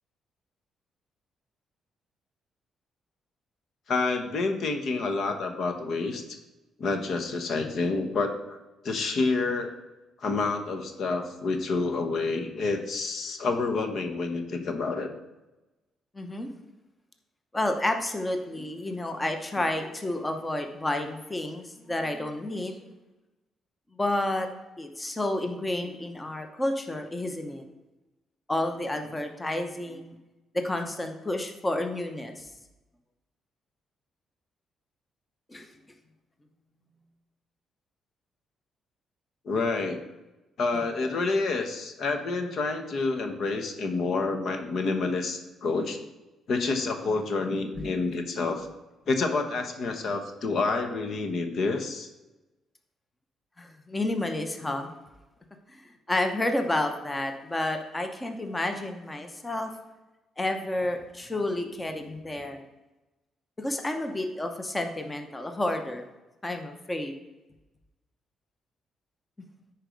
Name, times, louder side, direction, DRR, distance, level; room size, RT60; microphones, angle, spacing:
voice 1, 3.9-6.4 6.8-8.6 8.8-9.7 10.2-15.1 39.4-40.1 40.6-46.0 46.5-48.7 49.1-52.1, left 3 dB, 60° left, 6 dB, 1.1 m, -28 dB
voice 2, 16.1-16.5 17.5-22.9 23.9-24.5 24.8-27.6 28.5-30.1 30.5-32.5 35.5-35.7 47.7-47.8 53.6-54.9 55.8-59.7 60.4-62.6 63.6-66.0 66.4-67.1, left 1 dB, 15° left, 6 dB, 0.9 m, -30 dB
9.9 x 4.6 x 5.2 m, 1.0 s
cardioid pair, 90°, 0 cm